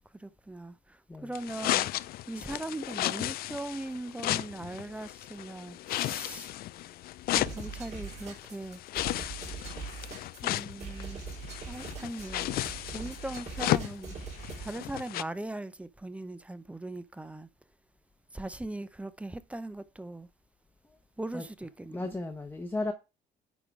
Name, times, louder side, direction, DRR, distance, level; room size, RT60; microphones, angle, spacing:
voice 1, 0.1-1.9 2.3-6.5 7.3-8.8 10.4-11.2 11.6-12.5 12.9-14.2 14.6-17.5 18.3-20.3 21.2-22.2, right 2 dB, 5° right, 0.5 m, -40 dB
sound 1, 1.3-15.2, left 15 dB, 65° left, 0.4 m, -34 dB
sound 2, 7.3-14.7, right 5 dB, 40° right, 4.6 m, -42 dB
voice 2, 21.9-22.9, left 2 dB, 10° left, 0.9 m, -34 dB
10.0 x 3.7 x 4.7 m
cardioid pair, 110°, 17 cm